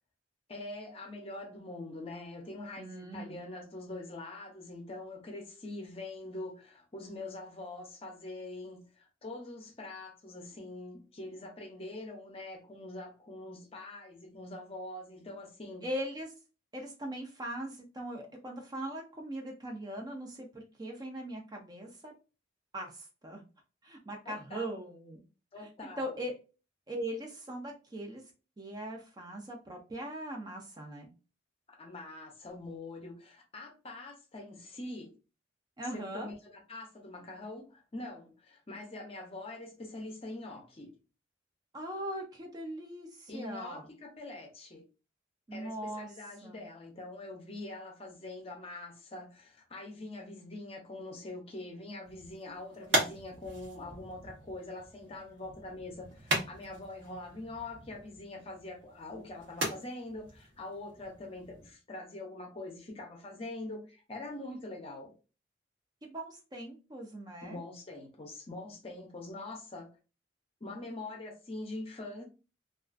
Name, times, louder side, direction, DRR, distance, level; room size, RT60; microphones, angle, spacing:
voice 1, 0.5-8.9 9.2-15.9 24.3-24.6 25.5-26.2 31.8-35.1 35.9-40.9 43.3-44.8 45.5-65.1 67.4-69.9 70.6-72.2, left 2 dB, 30° left, 0.5 m, -44 dB
voice 2, 2.8-3.4 15.8-16.3 16.7-22.1 22.7-23.4 23.8-25.2 25.6-25.7 26.0-26.3 26.9-28.2 28.6-31.1 35.8-36.3 41.7-43.9 45.5-46.7 66.0-67.6, right 1 dB, 20° right, 0.4 m, -40 dB
sound 1, 52.0-61.7, right 1 dB, 85° right, 0.8 m, -38 dB
2.4 x 2.3 x 2.4 m
head